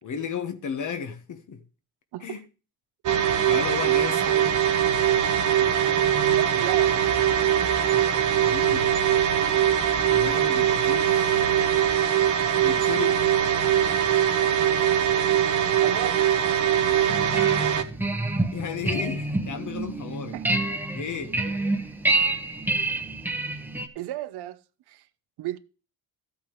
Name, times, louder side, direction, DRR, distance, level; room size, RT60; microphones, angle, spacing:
voice 1, 0.0-1.6 2.2-2.4 3.5-4.6 8.3-8.9 9.9-11.4 12.6-13.2 18.5-20.4 20.9-21.4, left 6 dB, 45° left, 1.3 m, -33 dB
sound 1, 3.1-17.8, right 9 dB, 50° right, 1.1 m, -22 dB
voice 2, 6.4-7.1 15.8-16.2 20.3-20.4 23.9-24.6 24.9-25.0 25.4-25.6, right 14 dB, 75° right, 0.9 m, -33 dB
sound 2, 17.1-23.9, right 2 dB, 5° right, 1.1 m, -28 dB
14.0 x 8.7 x 3.2 m
cardioid pair, 105°, 40 cm